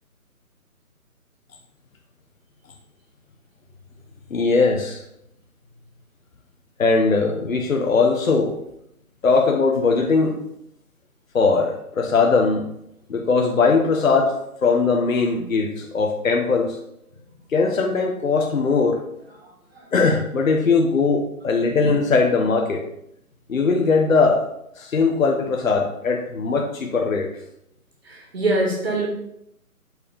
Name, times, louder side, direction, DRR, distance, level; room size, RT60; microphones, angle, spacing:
voice 1, 4.3-5.0 6.8-8.5 9.2-10.4 11.3-12.6 13.1-16.8 17.5-19.1 19.9-22.8 23.5-24.5 24.8-27.3, left 4 dB, 65° left, 2 dB, 1.1 m, -20 dB
voice 2, 19.4-19.9 28.0-29.1, right 2 dB, 45° right, 1 dB, 2.2 m, -24 dB
8.4 x 4.5 x 5.2 m, 0.77 s
hypercardioid pair, 175°, 44 cm